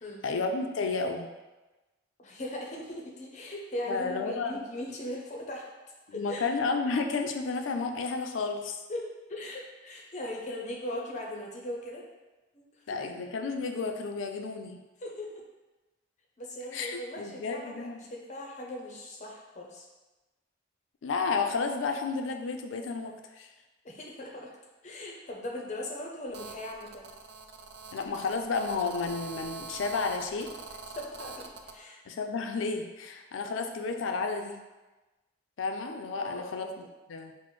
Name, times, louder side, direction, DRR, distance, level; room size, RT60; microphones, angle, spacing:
voice 1, 0.2-1.3 3.9-4.6 6.1-8.8 12.9-14.8 16.7-18.0 21.0-23.5 27.9-30.5 32.1-34.6 35.6-36.7 37.1-37.3, left 4 dB, 85° left, 5 dB, 0.4 m, -32 dB
voice 2, 2.2-5.7 6.1-6.5 8.9-12.0 12.5-13.0 15.0-15.4 16.4-19.9 23.8-24.5 24.8-27.1 30.9-32.0 36.2-36.7, left 1 dB, 35° left, -1 dB, 0.5 m, -39 dB
Telephone, 26.3-31.8, right 4 dB, 55° right, 0.3 m, -44 dB
5.9 x 2.1 x 3.1 m, 1.1 s
head